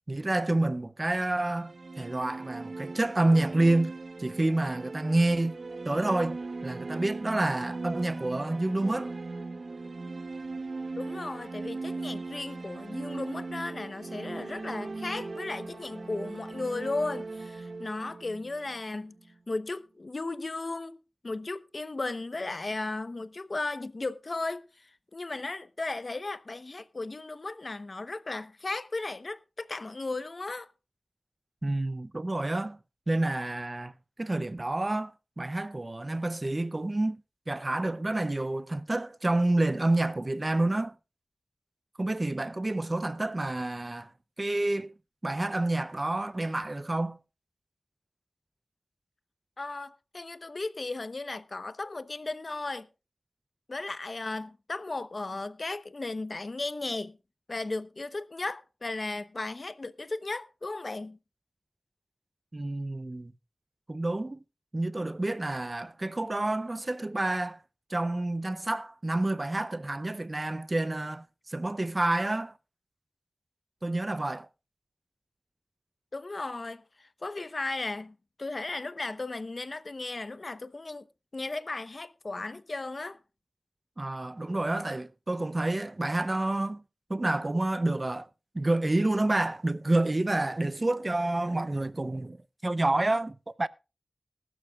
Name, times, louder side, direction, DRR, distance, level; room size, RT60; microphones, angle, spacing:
voice 1, 0.1-5.6 5.8-9.1 31.6-32.8 33.1-33.9 34.2-37.2 37.5-41.0 42.0-44.1 44.4-44.9 45.2-47.2 62.5-63.3 63.9-64.4 64.7-67.6 67.9-72.5 73.8-74.5 84.0-86.8 87.1-88.3 88.5-93.7, right 2 dB, 35° right, 0.6 m, -28 dB
sound 1, 1.4-19.3, right 3 dB, 65° right, 0.8 m, -39 dB
voice 2, 11.0-19.1 19.5-30.7 49.6-52.9 53.7-57.2 57.5-61.2 76.1-81.0 81.3-83.2, left 3 dB, 50° left, 0.8 m, -35 dB
20.0 x 12.0 x 2.3 m
wide cardioid pair, 70°, 0 cm